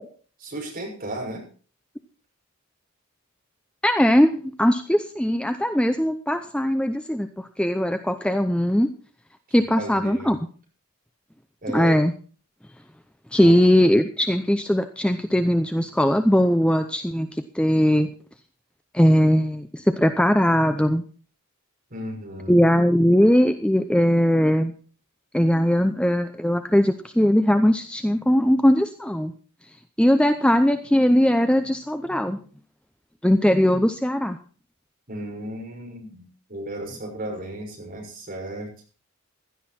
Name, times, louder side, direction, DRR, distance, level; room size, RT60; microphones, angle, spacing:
voice 1, 0.4-1.5 9.5-10.4 11.6-11.9 13.4-13.7 21.9-22.6 35.1-38.7, right 1 dB, 40° right, 0 dB, 6.1 m, -34 dB
voice 2, 3.8-8.9 9.5-10.4 11.7-12.1 13.3-18.1 18.9-21.0 22.5-24.7 25.3-29.3 30.0-32.4 33.2-34.4, equal, 5° left, 8 dB, 0.6 m, -20 dB
16.0 x 11.5 x 4.3 m, 0.39 s
head